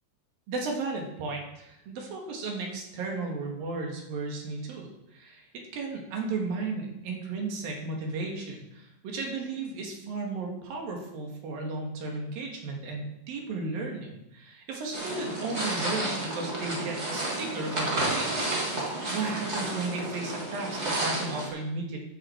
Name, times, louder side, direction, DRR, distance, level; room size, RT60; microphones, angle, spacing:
voice 1, 0.5-22.0, right 3 dB, 65° right, 1 dB, 3.4 m, -34 dB
sound 1, 14.9-21.5, right 2 dB, 30° right, 1.2 m, -31 dB
14.0 x 7.6 x 4.5 m, 0.84 s
omnidirectional pair, 4.7 m